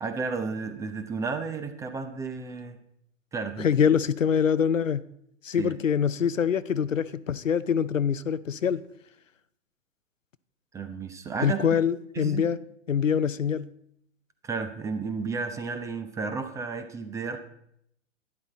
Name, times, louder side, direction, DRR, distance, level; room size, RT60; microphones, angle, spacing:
voice 1, 0.0-2.8 3.3-3.7 5.6-5.8 10.7-11.6 12.1-12.4 14.4-17.4, right 4 dB, 10° right, 0.5 m, -32 dB
voice 2, 3.6-5.0 5.4-8.8 11.4-12.6 12.9-13.7, left 7 dB, 80° left, 0.7 m, -24 dB
12.0 x 11.0 x 4.1 m
figure-of-eight pair, 110°, 38 cm